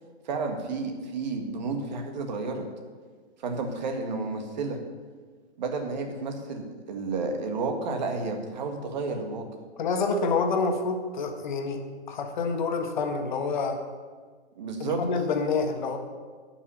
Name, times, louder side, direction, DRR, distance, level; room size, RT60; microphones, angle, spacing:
voice 1, 0.3-2.7 3.4-4.8 5.6-9.4 14.6-15.0, right 3 dB, 40° right, 4 dB, 1.7 m, -31 dB
voice 2, 9.8-13.8 14.8-16.0, left 4 dB, 45° left, 5 dB, 1.5 m, -27 dB
10.5 x 6.0 x 8.4 m, 1.5 s
hypercardioid pair, 160°, 34 cm